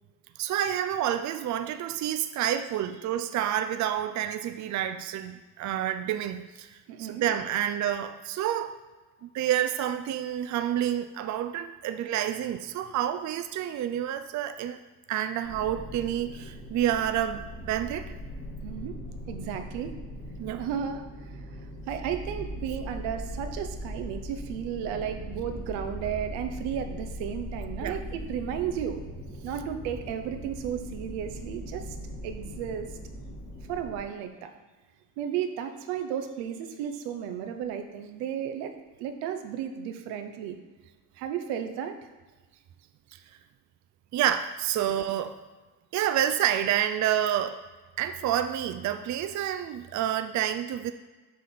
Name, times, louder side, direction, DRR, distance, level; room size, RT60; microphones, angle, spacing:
voice 1, 0.4-8.7 9.2-14.8 15.1-18.1 20.4-20.6 27.8-28.0 44.1-45.3 45.9-47.6 48.0-50.9, right 11 dB, 45° right, 9 dB, 0.5 m, -29 dB
voice 2, 6.9-7.3 18.6-19.0 19.3-19.9 20.6-21.0 21.9-29.0 29.4-32.0 32.2-32.9 33.7-34.5 35.2-38.7 39.0-40.6 41.2-41.9, right 8 dB, 85° right, 7 dB, 0.8 m, -33 dB
sound 1, 15.4-34.0, equal, 40° left, 2.2 m, -40 dB
6.5 x 3.6 x 5.8 m, 1.3 s
supercardioid pair, 80°, 40 cm